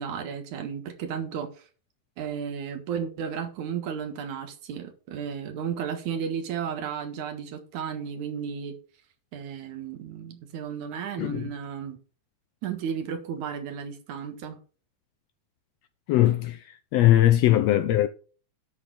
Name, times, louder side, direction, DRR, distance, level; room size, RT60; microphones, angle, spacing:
voice 1, 0.0-1.7 2.2-8.8 9.3-12.0 12.6-14.6, right 7 dB, 80° right, 2.9 m, -33 dB
voice 2, 16.1-16.6 16.9-18.1, left 13 dB, 80° left, 1.6 m, -20 dB
12.0 x 4.3 x 6.6 m
omnidirectional pair, 3.3 m